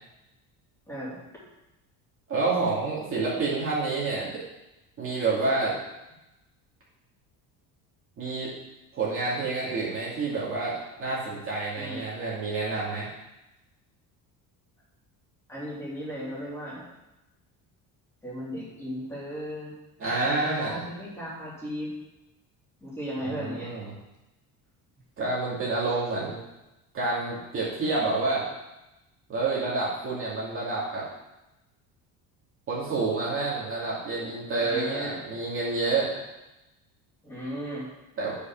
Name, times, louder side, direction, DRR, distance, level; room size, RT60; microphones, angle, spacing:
voice 1, 0.9-1.2 11.8-12.0 15.5-16.8 18.2-19.7 20.2-21.9 22.8-23.7 34.6-35.2 37.2-37.9, equal, 5° left, -8 dB, 3.4 m, -36 dB
voice 2, 2.3-4.4 5.0-5.7 8.2-8.5 8.9-13.1 20.0-20.8 23.2-23.9 25.2-26.4 26.9-28.5 29.3-31.0 32.7-36.2 38.2-38.4, right 3 dB, 35° right, -7 dB, 2.4 m, -28 dB
8.3 x 5.4 x 5.9 m, 0.96 s
cardioid pair, 155°, 38 cm